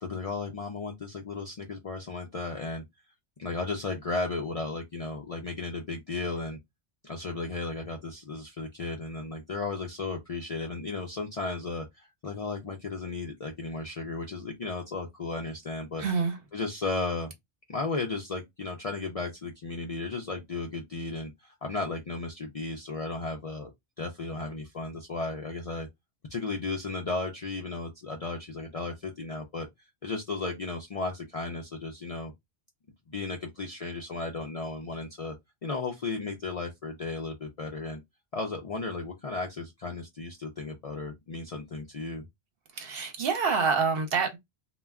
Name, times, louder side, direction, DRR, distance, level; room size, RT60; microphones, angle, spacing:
voice 1, 0.0-2.8 3.4-6.6 7.0-16.0 16.5-17.3 17.7-23.7 24.0-25.9 26.3-29.7 30.0-32.3 33.1-35.3 35.6-38.0 38.3-42.2, left 3 dB, 50° left, 0.4 m, -34 dB
voice 2, 16.0-16.4 42.8-44.4, right 5 dB, 60° right, 0.9 m, -27 dB
2.2 x 2.1 x 3.4 m
omnidirectional pair, 1.1 m